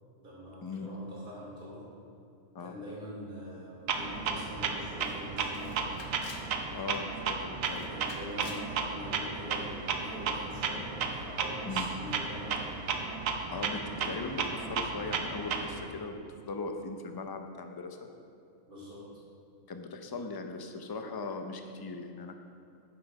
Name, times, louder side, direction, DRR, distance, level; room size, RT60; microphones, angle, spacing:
voice 1, 0.2-1.9 2.6-6.0 7.8-12.7 18.7-19.1, equal, 40° right, -8 dB, 2.9 m, -44 dB
Clock, 3.9-15.9, right 5 dB, 90° right, 1.2 m, -34 dB
Camera, 4.4-4.5 4.8-4.9 5.5-6.5 6.9-7.3 7.6-8.7, left 5 dB, 80° left, 1.2 m, -50 dB
voice 2, 6.7-8.0 11.7-11.9 13.5-16.2 16.5-18.1 19.7-22.4, left 3 dB, 30° left, 5 dB, 0.4 m, -39 dB
8.9 x 7.5 x 5.3 m, 2.7 s
omnidirectional pair, 1.3 m